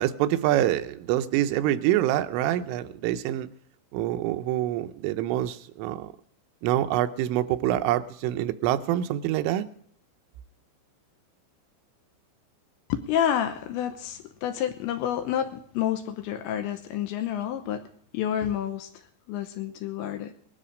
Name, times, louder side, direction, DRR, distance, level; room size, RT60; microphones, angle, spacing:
voice 1, 0.0-3.5 3.9-6.1 6.6-9.7, right 13 dB, 85° right, 9 dB, 3.2 m, -26 dB
voice 2, 12.9-17.9 18.1-18.9 19.3-20.3, left 10 dB, 80° left, 8 dB, 2.9 m, -29 dB
20.0 x 13.0 x 5.1 m, 0.63 s
omnidirectional pair, 5.7 m